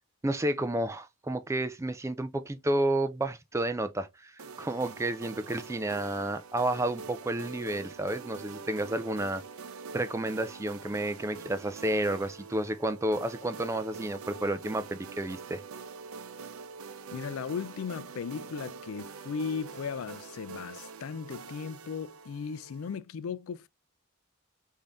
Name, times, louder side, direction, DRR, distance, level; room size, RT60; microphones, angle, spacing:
voice 1, 0.2-9.4 9.9-15.6, right 1 dB, 15° right, 0.3 m, -31 dB
sound 1, 4.4-23.0, right 5 dB, 85° right, 0.6 m, -45 dB
voice 2, 17.1-23.7, left 6 dB, 75° left, 0.4 m, -37 dB
5.2 x 2.7 x 3.4 m
head